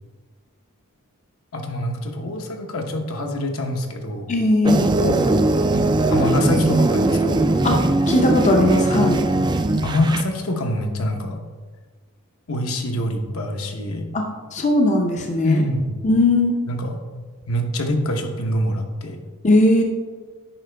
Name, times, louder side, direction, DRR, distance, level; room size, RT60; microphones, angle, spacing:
voice 1, 1.5-4.3 5.0-5.4 5.7-7.4 9.8-11.4 12.5-14.1 15.4-15.9 16.7-16.9 17.5-19.2, left 1 dB, 65° left, 3 dB, 0.9 m, -25 dB
voice 2, 4.3-4.9 7.6-7.8 8.1-9.3 14.1-14.2 14.5-15.6 16.0-16.5 19.4-19.8, left 2 dB, 35° left, 2 dB, 0.6 m, -18 dB
sound 1, 4.6-10.2, right 2 dB, 20° right, 0.3 m, -19 dB
8.7 x 5.4 x 3.4 m, 1.4 s
head